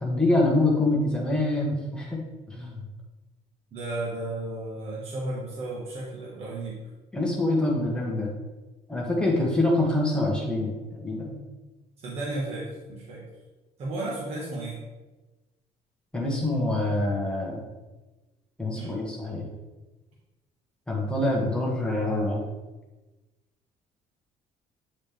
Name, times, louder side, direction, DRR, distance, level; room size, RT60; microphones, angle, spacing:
voice 1, 0.0-2.8 7.1-8.3 8.9-10.7 11.0-11.4 16.1-17.6 18.6-19.4 20.9-22.4, left 2 dB, 5° left, -3 dB, 1.3 m, -25 dB
voice 2, 3.7-6.8 12.0-13.2 13.8-14.8 18.7-19.0, right 2 dB, 45° right, -5 dB, 1.4 m, -34 dB
8.9 x 4.1 x 3.4 m, 1.1 s
cardioid pair, 160°, 15 cm